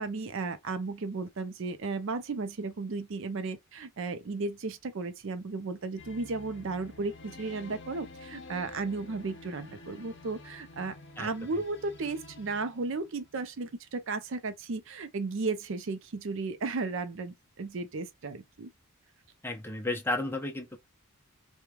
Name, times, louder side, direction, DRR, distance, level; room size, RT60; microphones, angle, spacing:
voice 1, 0.0-18.7, right 3 dB, 60° right, 0.5 m, -34 dB
sound 1, 6.0-13.5, left 3 dB, 55° left, 0.7 m, -49 dB
voice 2, 19.4-20.8, left 2 dB, 10° left, 0.6 m, -32 dB
3.1 x 2.2 x 2.3 m
head